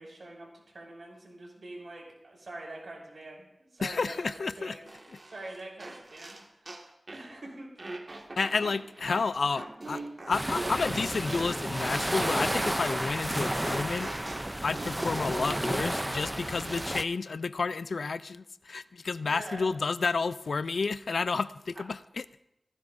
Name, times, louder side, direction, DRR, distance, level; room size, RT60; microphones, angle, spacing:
voice 1, 0.0-4.9 5.3-7.7 19.2-19.7 21.8-21.9, right 2 dB, 75° right, -1 dB, 5.8 m, -45 dB
voice 2, 3.8-4.7 8.4-10.0 10.3-14.1 14.6-22.2, left 4 dB, 85° left, 15 dB, 0.4 m, -31 dB
sound 1, 4.9-7.3 7.8-15.8, right 2 dB, 55° right, 1.8 m, -42 dB
sound 2, 10.3-17.0, right 1 dB, 15° right, 0.5 m, -32 dB
19.0 x 16.5 x 2.6 m, 0.85 s
cardioid pair, 45°, 0 cm